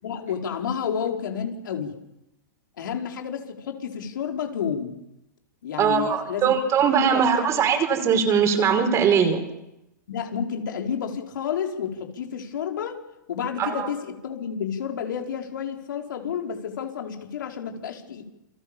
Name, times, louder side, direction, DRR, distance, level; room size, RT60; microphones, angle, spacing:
voice 1, 0.0-2.0 2.8-5.0 5.6-6.5 7.0-7.6 10.1-13.0 13.3-18.2, left 7 dB, 75° left, 3 dB, 4.9 m, -30 dB
voice 2, 5.8-9.4 13.6-13.9, right 7 dB, 25° right, 6 dB, 5.2 m, -21 dB
29.0 x 25.0 x 7.3 m, 0.89 s
hypercardioid pair, 135°, 11 cm